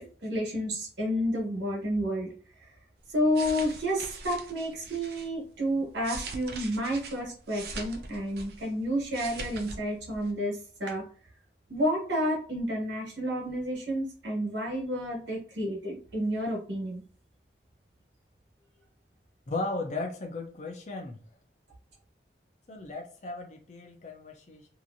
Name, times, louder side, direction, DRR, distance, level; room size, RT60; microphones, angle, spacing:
voice 1, 0.0-2.3 3.1-11.1 11.7-17.0, equal, 80° right, -2 dB, 1.2 m, -30 dB
sound 1, 3.1-5.3 5.8-8.7 9.0-9.8 10.1-10.3, right 3 dB, 60° right, 0.5 m, -41 dB
voice 2, 19.5-21.2 22.7-24.7, left 2 dB, 40° left, 2 dB, 0.5 m, -36 dB
2.9 x 2.6 x 2.6 m, 0.40 s
head